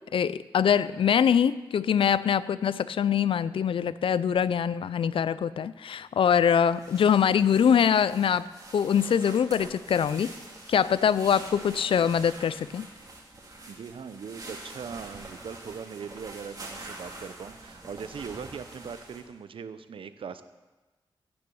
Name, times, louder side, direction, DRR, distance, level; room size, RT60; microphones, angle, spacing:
voice 1, 0.1-8.5 8.7-10.3 10.7-12.8, left 8 dB, 80° left, 16 dB, 0.4 m, -23 dB
sound 1, 6.7-19.2, right 2 dB, 45° right, 2.6 m, -45 dB
voice 2, 13.7-20.4, right 6 dB, 80° right, 12 dB, 0.7 m, -40 dB
15.5 x 6.9 x 7.0 m, 1.2 s
wide cardioid pair, 105°, 9 cm